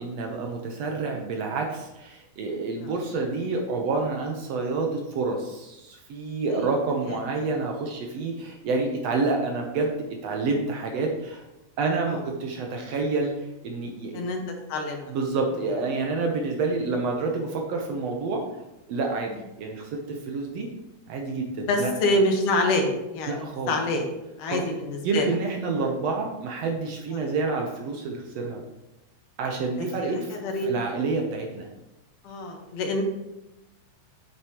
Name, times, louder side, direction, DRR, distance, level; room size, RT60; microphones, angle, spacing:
voice 1, 0.0-10.0 10.2-11.4 11.8-13.3 13.6-14.2 15.1-18.5 18.9-19.3 19.6-20.7 21.1-21.9 23.3-23.8 24.5-24.6 25.0-28.6 29.4-30.4 30.7-31.7, right 3 dB, 65° right, 2 dB, 1.9 m, -28 dB
voice 2, 21.7-24.1 24.4-25.3 27.1-27.2 29.8-30.7 32.2-33.0, left 1 dB, 90° left, 2 dB, 2.8 m, -26 dB
8.8 x 8.0 x 3.0 m, 0.95 s
omnidirectional pair, 3.5 m